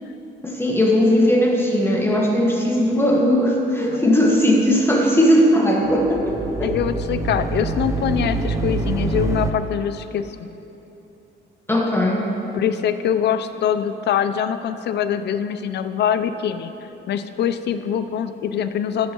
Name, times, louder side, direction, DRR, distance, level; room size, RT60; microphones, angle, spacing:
voice 1, 0.4-6.8 11.7-12.3, equal, 10° left, -2 dB, 1.2 m, -18 dB
sound 1, 5.9-9.5, right 3 dB, 15° right, 0.6 m, -25 dB
voice 2, 6.6-10.5 12.5-16.7 17.1-19.1, left 8 dB, 60° left, 10 dB, 0.5 m, -23 dB
13.5 x 6.5 x 3.0 m, 2.9 s
cardioid pair, 90°, 20 cm